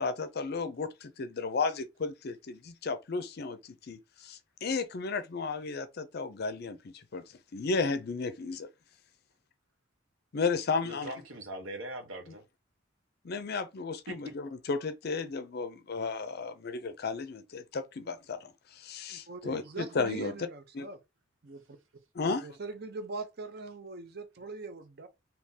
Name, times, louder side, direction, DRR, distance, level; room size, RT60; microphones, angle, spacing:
voice 1, 0.0-7.2 7.5-8.7 10.3-11.1 13.2-20.3 20.7-20.9 22.1-22.5, left 4 dB, 50° left, 0.5 m, -34 dB
voice 2, 10.8-12.4 14.1-14.3 19.4-19.6, right 1 dB, 75° right, 1.0 m, -41 dB
voice 3, 19.1-21.0 21.4-21.8 22.2-25.1, right 3 dB, 50° right, 0.7 m, -42 dB
3.7 x 2.8 x 2.7 m
head